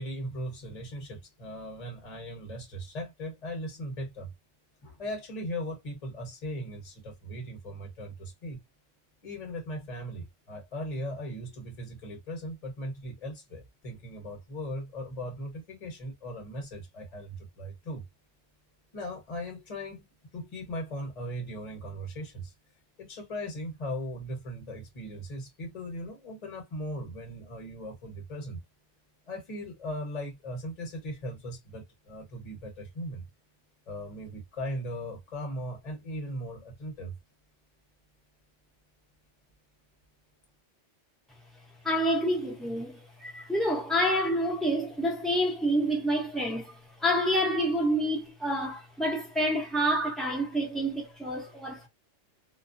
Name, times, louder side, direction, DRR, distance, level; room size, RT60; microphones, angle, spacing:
voice 1, 0.0-4.3 4.8-8.6 9.2-18.0 18.9-20.0 20.3-22.5 23.0-28.6 29.3-33.2 33.9-37.1, equal, 35° left, 1.0 m, -38 dB
voice 2, 41.8-51.9, equal, ahead, 0.7 m, -28 dB
2.4 x 2.0 x 2.5 m
omnidirectional pair, 1.3 m